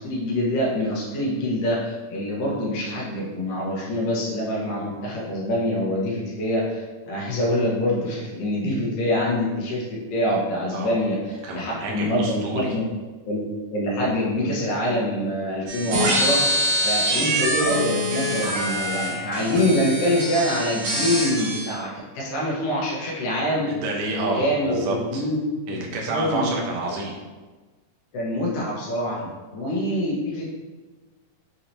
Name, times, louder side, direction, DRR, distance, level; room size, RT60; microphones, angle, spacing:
voice 1, 0.0-9.8 10.1-12.8 13.3-13.4 13.7-16.4 16.8-21.9 22.1-23.7 24.1-25.4 26.1-26.6 28.1-29.2 29.5-30.4, left 1 dB, 85° left, -4 dB, 2.6 m, -25 dB
voice 2, 10.7-11.0 11.4-12.7 23.7-25.2 25.7-27.2 29.2-29.3, right 2 dB, 80° right, -2 dB, 1.6 m, -29 dB
sound 1, 15.7-21.7, equal, 60° right, 1.9 m, -24 dB
6.3 x 3.0 x 2.7 m, 1.3 s
omnidirectional pair, 3.9 m